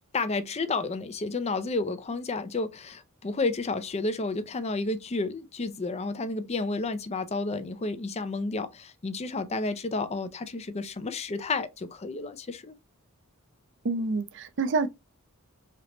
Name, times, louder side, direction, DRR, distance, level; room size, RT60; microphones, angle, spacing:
voice 1, 0.1-12.7, left 3 dB, 30° left, 0.5 m, -31 dB
voice 2, 13.8-14.9, right 3 dB, 55° right, 0.5 m, -27 dB
3.3 x 3.0 x 3.8 m
head